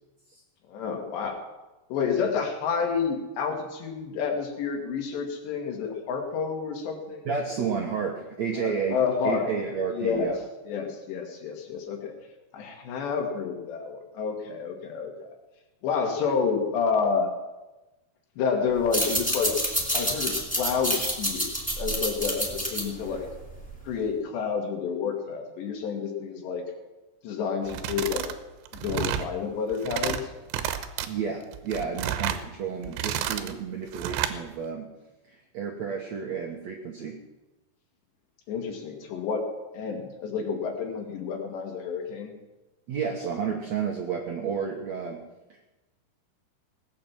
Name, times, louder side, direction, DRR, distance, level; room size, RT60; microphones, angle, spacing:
voice 1, 0.7-1.4 1.9-7.2 8.6-9.5 9.9-12.1 12.5-15.3 15.8-17.3 18.4-19.5 19.9-21.5 21.8-23.3 23.9-26.6 27.2-28.3 28.7-30.3 38.5-39.5 39.7-42.3, left 6 dB, 80° left, 3 dB, 4.2 m, -29 dB
voice 2, 7.2-9.0 9.2-10.4 31.0-34.9 35.3-37.2 42.9-45.2, right 6 dB, 70° right, 1 dB, 1.6 m, -31 dB
sound 1, 18.8-23.9, equal, ahead, 2.2 m, -28 dB
sound 2, 27.7-28.4 28.7-29.3 29.7-30.2 30.5-31.1 31.5-32.4 32.8-33.5 33.9-34.4, right 10 dB, 90° right, 3.1 m, -30 dB
18.5 x 8.9 x 7.4 m, 1.1 s
omnidirectional pair, 4.9 m